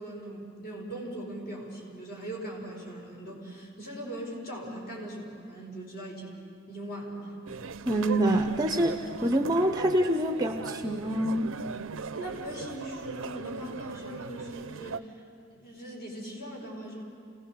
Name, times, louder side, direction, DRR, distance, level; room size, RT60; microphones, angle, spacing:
voice 1, 0.0-7.4 12.1-15.2 15.5-17.0, right 1 dB, 50° left, -1 dB, 4.9 m, -40 dB
sound 1, 7.5-15.0, right 5 dB, 70° right, 0.6 m, -39 dB
voice 2, 7.9-11.6, right 1 dB, 20° right, 5 dB, 0.7 m, -26 dB
27.5 x 19.0 x 6.9 m, 2.3 s
head